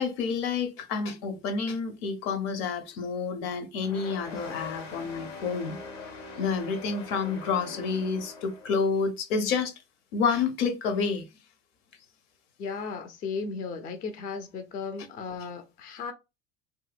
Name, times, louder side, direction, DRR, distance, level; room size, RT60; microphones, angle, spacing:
voice 1, 0.0-5.8 6.4-9.7 10.1-11.2, left 5 dB, 55° left, 0.7 m, -29 dB
sound 1, 3.8-8.9, left 4 dB, 75° left, 0.9 m, -42 dB
voice 2, 12.6-16.1, left 5 dB, 25° left, 0.4 m, -35 dB
2.7 x 2.6 x 2.4 m
figure-of-eight pair, 70°, 38 cm